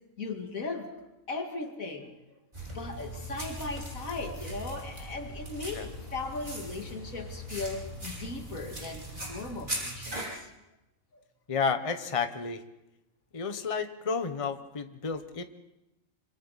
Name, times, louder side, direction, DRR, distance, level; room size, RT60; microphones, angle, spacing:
voice 1, 0.2-2.1 2.7-10.5, left 3 dB, 85° left, 3 dB, 2.7 m, -38 dB
sound 1, 2.5-10.3, right 1 dB, 35° right, 5.8 m, -39 dB
voice 2, 11.5-12.6 13.3-15.4, left 5 dB, 25° left, 8 dB, 1.1 m, -31 dB
26.0 x 26.0 x 4.1 m, 0.93 s
omnidirectional pair, 1.4 m